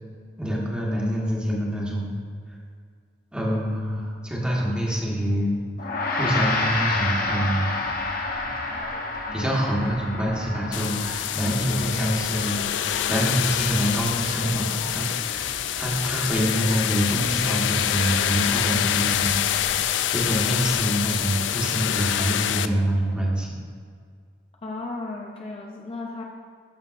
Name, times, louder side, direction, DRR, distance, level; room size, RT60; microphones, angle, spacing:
voice 1, 0.4-2.2 3.3-5.6 6.2-7.7 9.3-23.5, equal, 5° right, -4 dB, 1.3 m, -26 dB
Gong, 5.8-15.3, left 2 dB, 55° left, 0.9 m, -30 dB
sound 1, 6.7-19.8, right 1 dB, 25° right, 1.7 m, -43 dB
sound 2, 10.7-22.7, left 11 dB, 85° left, 0.3 m, -26 dB
voice 2, 24.6-26.2, left 3 dB, 35° left, 0 dB, 0.5 m, -34 dB
12.0 x 6.4 x 2.5 m, 2.1 s
head